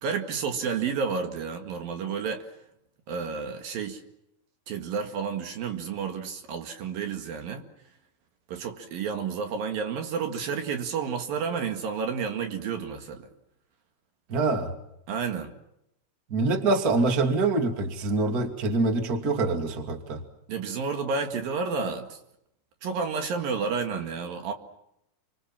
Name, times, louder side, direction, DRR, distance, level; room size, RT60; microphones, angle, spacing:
voice 1, 0.0-2.5 3.1-4.0 4.7-7.7 8.5-13.3 15.1-15.5 20.5-22.2 22.8-24.5, right 5 dB, 65° right, 5 dB, 3.7 m, -31 dB
voice 2, 14.3-14.7 16.3-20.2, right 3 dB, 25° right, 5 dB, 2.4 m, -25 dB
29.5 x 25.0 x 7.4 m, 0.81 s
omnidirectional pair, 4.5 m